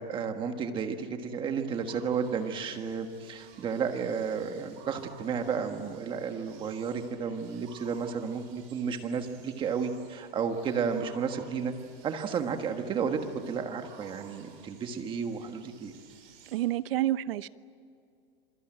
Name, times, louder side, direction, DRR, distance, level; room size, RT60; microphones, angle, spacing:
voice 1, 0.0-11.7 12.0-13.2 13.5-15.9, right 6 dB, 15° right, 6 dB, 1.5 m, -32 dB
sound 1, 1.7-16.6, right 7 dB, 55° right, 7.6 m, -56 dB
voice 2, 16.5-17.5, right 14 dB, 70° right, 15 dB, 0.9 m, -29 dB
27.0 x 23.0 x 9.0 m, 2.4 s
supercardioid pair, 175°, 30 cm